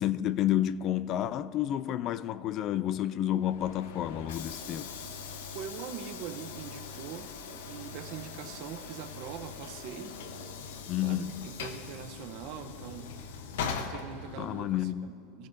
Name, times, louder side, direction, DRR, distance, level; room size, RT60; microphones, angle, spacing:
voice 1, 0.0-4.9 10.9-11.5 14.4-15.1, left 12 dB, 35° left, 0.4 m, -30 dB
Train / Sliding door, 3.4-14.8, left 5 dB, 85° left, 0.9 m, -41 dB
voice 2, 5.5-7.4 7.7-10.2 11.0-13.2 13.7-15.5, right 8 dB, 50° right, 0.8 m, -42 dB
22.0 x 15.0 x 2.7 m
supercardioid pair, 150°, 0 cm